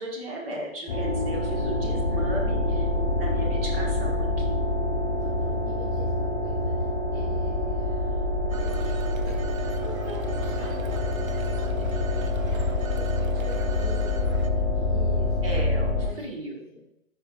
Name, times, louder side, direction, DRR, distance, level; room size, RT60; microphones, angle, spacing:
voice 1, 0.0-2.9 3.1-4.6 15.4-16.6, right 1 dB, 45° right, -1 dB, 1.6 m, -36 dB
sound 1, 0.9-16.1, left 2 dB, 25° left, 0.8 m, -26 dB
voice 2, 1.4-1.9 5.2-8.2 8.6-15.6 16.0-16.8, equal, 10° right, -12 dB, 1.3 m, -45 dB
Telephone, 8.5-14.5, right 5 dB, 80° right, 0.7 m, -41 dB
8.8 x 4.7 x 2.4 m, 0.79 s
hypercardioid pair, 160°, 40 cm